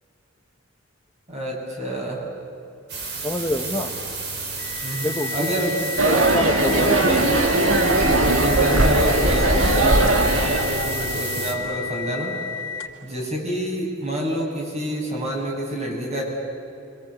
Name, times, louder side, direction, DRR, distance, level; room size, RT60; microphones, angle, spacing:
voice 1, 1.3-2.2 4.8-5.8 6.6-7.2 7.5-12.4 13.0-16.2, equal, 35° right, -1 dB, 7.4 m, -28 dB
sound 1, 2.9-11.5, right 3 dB, 55° right, 3.9 m, -31 dB
voice 2, 3.2-3.9 5.0-5.3 5.7-7.4, left 1 dB, 15° left, 0 dB, 1.5 m, -27 dB
sound 2, 4.6-13.1, left 6 dB, 85° left, 3.1 m, -32 dB
sound 3, 6.0-11.2, right 2 dB, 85° right, 2.2 m, -19 dB
27.5 x 25.5 x 8.5 m, 2.7 s
head